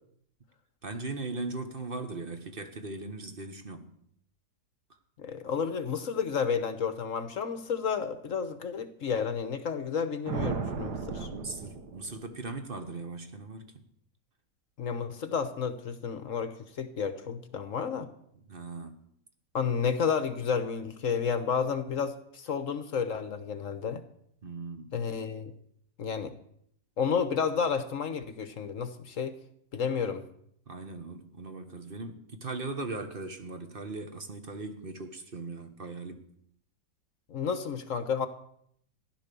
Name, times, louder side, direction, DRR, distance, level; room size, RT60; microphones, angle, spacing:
voice 1, 0.8-4.0 11.1-13.8 18.4-19.0 24.4-24.9 30.7-36.3, right 3 dB, 35° right, 1.4 m, -39 dB
voice 2, 5.2-11.3 14.8-18.1 19.5-24.0 24.9-25.5 26.0-26.3 27.0-29.3 29.7-30.2 37.3-38.3, left 6 dB, 50° left, 1.2 m, -31 dB
sound 1, 10.3-12.5, right 5 dB, 65° right, 1.7 m, -35 dB
15.0 x 11.5 x 6.9 m
omnidirectional pair, 2.0 m